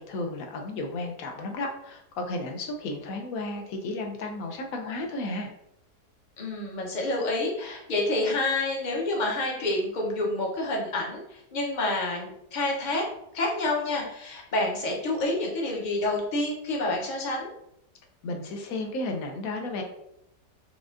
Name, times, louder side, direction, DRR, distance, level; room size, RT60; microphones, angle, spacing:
voice 1, 0.0-5.5 18.2-19.8, left 2 dB, 65° left, 3 dB, 1.0 m, -33 dB
voice 2, 6.4-13.1 13.3-17.5, left 2 dB, 40° left, -1 dB, 0.7 m, -28 dB
5.1 x 2.4 x 2.5 m, 0.78 s
omnidirectional pair, 1.8 m